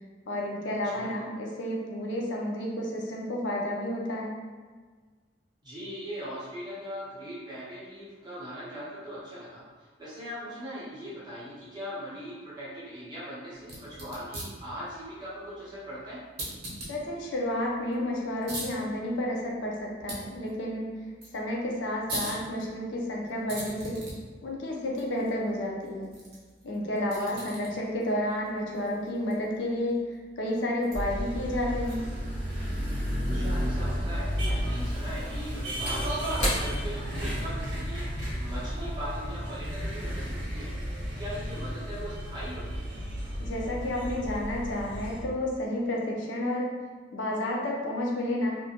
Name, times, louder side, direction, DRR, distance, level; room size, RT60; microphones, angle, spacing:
voice 1, 0.3-4.3 16.9-20.9 21.3-24.0 24.4-26.1 26.6-32.1 43.4-46.7 47.1-48.6, left 1 dB, 90° left, -2 dB, 0.5 m, -31 dB
voice 2, 5.6-16.2 27.2-27.5 33.3-40.7 41.2-42.8, equal, 25° right, -10 dB, 0.7 m, -40 dB
sound 1, 13.6-32.3, right 1 dB, 60° right, 0.9 m, -44 dB
sound 2, 30.9-45.2, equal, 85° right, 0.7 m, -32 dB
Slam / Wood, 35.8-39.6 40.0-40.1, equal, 40° left, 0.9 m, -35 dB
2.5 x 2.1 x 2.8 m, 1.5 s
head